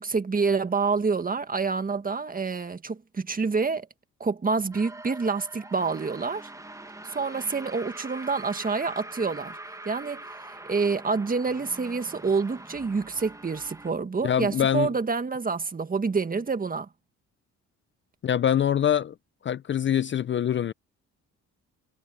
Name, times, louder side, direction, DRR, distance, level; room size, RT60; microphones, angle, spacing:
voice 1, 0.0-3.9 4.2-6.5 7.0-9.6 9.8-10.2 10.6-16.9, right 4 dB, 30° right, 1.7 m, -27 dB
sound 1, 4.7-13.9, right 2 dB, 10° right, 1.4 m, -43 dB
voice 2, 14.2-14.9 18.2-19.1 19.4-20.7, left 9 dB, 40° left, 0.5 m, -24 dB
cardioid pair, 90°, 30 cm